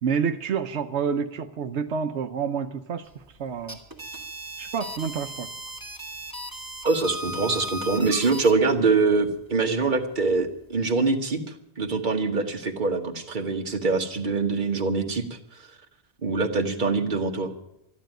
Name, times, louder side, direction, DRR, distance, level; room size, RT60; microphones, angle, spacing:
voice 1, 0.0-3.1 3.4-3.8 4.6-5.5, right 6 dB, 85° right, 8 dB, 1.1 m, -28 dB
sound 1, 3.5-8.5, equal, 20° right, 2.0 m, -37 dB
voice 2, 6.8-11.4 11.8-15.4 16.2-17.5, right 4 dB, 45° right, 4 dB, 1.5 m, -24 dB
13.0 x 11.5 x 9.0 m, 0.86 s
omnidirectional pair, 1.1 m